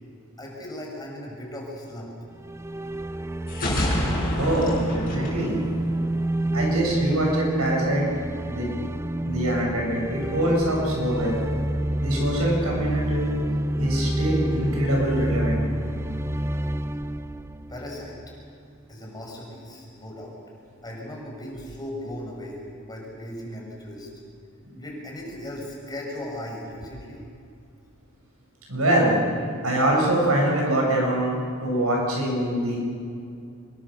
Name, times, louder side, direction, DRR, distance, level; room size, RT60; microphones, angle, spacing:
voice 1, 0.4-2.1 17.7-18.2 18.9-20.3 20.8-24.1 24.8-27.2, left 1 dB, 20° left, -2 dB, 5.9 m, -37 dB
sound 1, 2.4-18.5, right 1 dB, 10° right, 0.5 m, -28 dB
sound 2, 3.5-6.3, left 1 dB, 45° left, 6.5 m, -28 dB
voice 2, 4.3-5.6 6.5-8.1 8.5-8.7 9.2-11.4 12.0-13.3 13.8-15.6 24.7-24.9 28.7-29.2 29.6-32.8, right 1 dB, 85° right, -1 dB, 7.4 m, -24 dB
25.0 x 22.5 x 6.8 m, 2.4 s
head